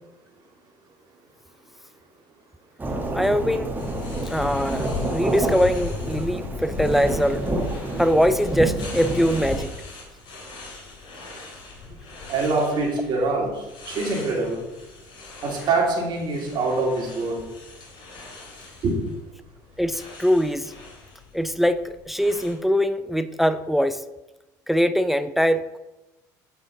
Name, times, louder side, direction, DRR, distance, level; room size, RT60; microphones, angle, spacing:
Thunderstorm / Rain, 2.8-9.6, right 2 dB, 20° right, 1.3 m, -29 dB
voice 1, 3.1-3.7 4.3-7.4 8.0-9.7 19.8-20.7 21.3-24.0 24.7-25.8, equal, ahead, 12 dB, 0.4 m, -22 dB
sound 1, 3.8-22.5, left 4 dB, 55° left, 2.4 m, -39 dB
voice 2, 12.3-13.5 13.9-14.6 15.4-17.4 18.8-19.0, right 3 dB, 50° right, -2 dB, 2.1 m, -24 dB
8.4 x 5.0 x 4.0 m, 1.0 s
hypercardioid pair, 75°, 10 cm